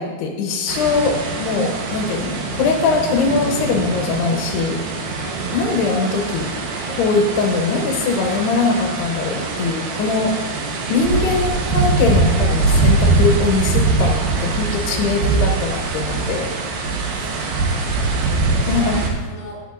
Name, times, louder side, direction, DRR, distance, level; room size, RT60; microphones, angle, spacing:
voice 1, 0.0-4.8 5.5-6.5 6.9-10.3 10.9-16.5 18.7-19.0, left 4 dB, 85° left, 2 dB, 3.0 m, -21 dB
sound 1, 0.7-19.1, right 3 dB, 75° right, 2.8 m, -22 dB
voice 2, 5.1-5.7 10.1-10.6 14.8-15.2 17.2-19.6, equal, 50° left, -6 dB, 4.0 m, -38 dB
14.5 x 8.2 x 2.5 m, 1.4 s
omnidirectional pair, 4.6 m